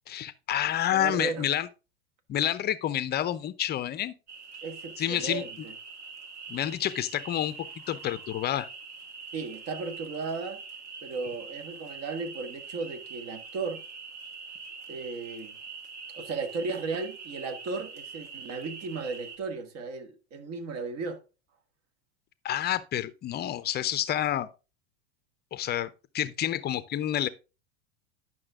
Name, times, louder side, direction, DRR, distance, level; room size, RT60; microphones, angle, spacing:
voice 1, 0.1-1.7 2.3-4.1 5.0-5.4 6.5-8.7 22.4-24.5 25.5-25.9 26.1-27.3, left 11 dB, 30° left, 0.6 m, -29 dB
voice 2, 0.9-1.5 4.6-5.7 9.3-10.6 11.0-13.8 14.9-15.6 16.1-21.2, right 4 dB, 45° right, 1.9 m, -35 dB
sound 1, 4.3-19.4, right 5 dB, 80° right, 1.9 m, -44 dB
11.0 x 6.0 x 3.6 m
hypercardioid pair, 95°, 34 cm